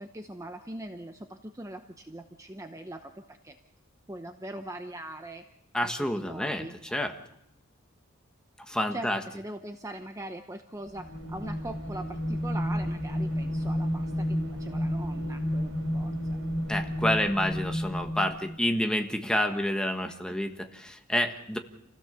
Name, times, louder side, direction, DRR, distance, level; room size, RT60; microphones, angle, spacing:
voice 1, 0.0-3.6 4.1-5.4 5.8-6.7 8.9-16.4 19.3-19.6 20.1-20.2, right 1 dB, 15° right, 6 dB, 0.8 m, -41 dB
voice 2, 5.7-7.1 8.7-9.2 16.7-21.6, left 1 dB, 5° left, 5 dB, 1.4 m, -29 dB
sound 1, 10.9-18.6, equal, 65° right, 6.0 m, -31 dB
28.0 x 16.5 x 6.9 m, 0.84 s
head